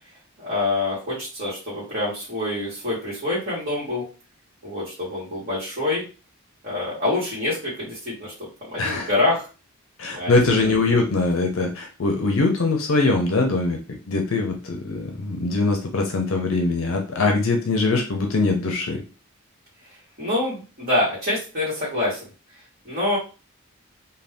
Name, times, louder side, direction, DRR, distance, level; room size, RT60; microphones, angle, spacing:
voice 1, 0.4-4.0 4.6-6.0 6.6-8.3 8.7-9.5 10.1-11.0 20.2-22.2 22.8-23.2, left 2 dB, 40° right, -9 dB, 1.3 m, -26 dB
voice 2, 8.8-9.1 10.0-13.8 14.1-19.0, left 3 dB, 65° left, 3 dB, 0.5 m, -22 dB
2.6 x 2.2 x 3.4 m, 0.32 s
head